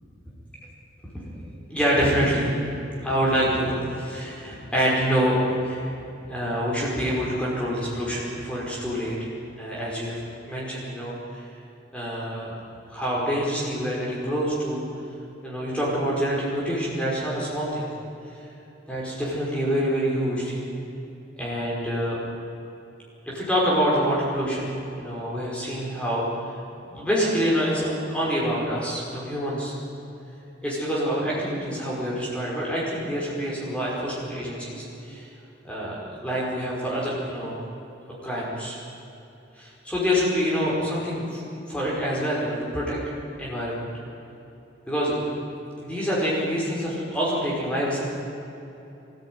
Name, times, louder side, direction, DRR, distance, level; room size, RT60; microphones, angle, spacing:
voice 1, 1.7-2.5 3.0-5.8 6.3-9.3 9.6-10.2 10.5-11.4 11.9-12.5 12.9-14.8 15.4-17.8 18.9-20.7 21.4-22.2 23.3-24.7 25.0-26.2 26.8-29.7 30.6-35.3 35.6-37.6 38.2-38.8 39.6-41.4 41.7-43.0 43.4-43.9 44.9-45.2 45.8-48.0, equal, 5° left, -6 dB, 5.3 m, -26 dB
25.0 x 14.5 x 9.5 m, 2.9 s
head